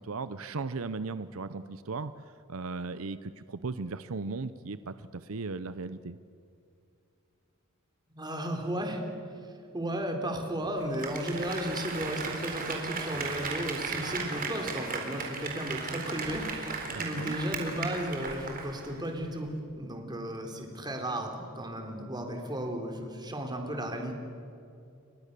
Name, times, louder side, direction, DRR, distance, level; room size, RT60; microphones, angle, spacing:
voice 1, 0.0-6.2 16.9-17.3, right 4 dB, 70° right, 13 dB, 0.7 m, -37 dB
voice 2, 8.1-9.0 9.7-19.5 19.8-24.1, equal, 20° right, 3 dB, 3.7 m, -34 dB
Applause, 10.8-19.0 19.3-19.4, right 4 dB, 45° right, 4.1 m, -36 dB
30.0 x 24.0 x 6.8 m, 2.6 s
head